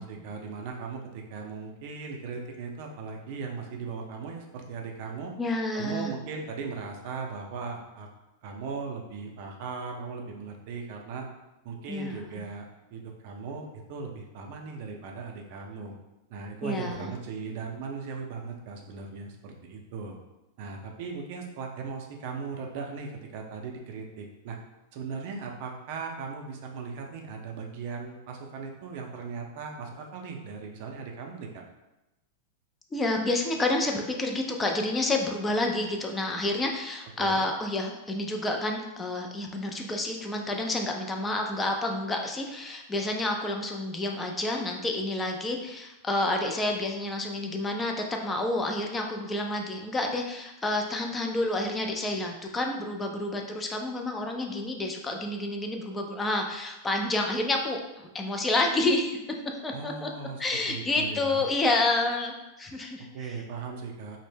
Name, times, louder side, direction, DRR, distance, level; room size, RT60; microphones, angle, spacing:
voice 1, 0.0-5.3 5.7-8.1 8.4-11.3 11.6-12.6 12.9-15.9 16.3-20.2 20.6-24.6 24.9-31.6 37.2-37.4 59.7-61.4 63.0-64.2, right 5 dB, 55° right, 2 dB, 0.4 m, -38 dB
voice 2, 5.4-6.1 11.9-12.4 16.6-17.1 32.9-59.2 59.6-60.1 60.4-63.4, left 2 dB, 15° left, 2 dB, 0.3 m, -29 dB
2.0 x 2.0 x 3.2 m, 0.97 s
hypercardioid pair, 105°, 0 cm